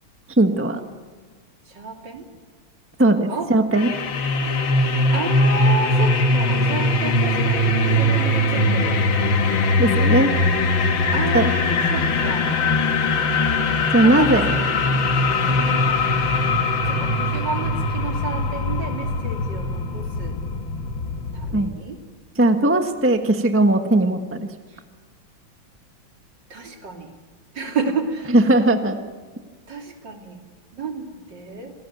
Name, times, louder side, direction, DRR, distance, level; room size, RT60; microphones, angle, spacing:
voice 1, 0.4-0.8 3.0-3.9 9.8-10.3 11.3-11.5 13.9-14.5 21.5-21.7 22.3-24.5 28.3-29.0, right 1 dB, 10° right, 6 dB, 1.1 m, -18 dB
voice 2, 1.7-2.3 3.3-3.5 4.8-9.0 11.1-12.5 14.0-15.0 15.5-16.0 16.8-20.4 21.3-22.0 24.7-24.8 26.5-27.1 27.5-28.3 29.4-30.4 30.7-31.7, right 3 dB, 60° right, 2 dB, 3.6 m, -31 dB
sound 1, 3.7-21.7, left 2 dB, 70° left, 2.3 m, -21 dB
27.0 x 18.5 x 9.3 m, 1.5 s
omnidirectional pair, 2.2 m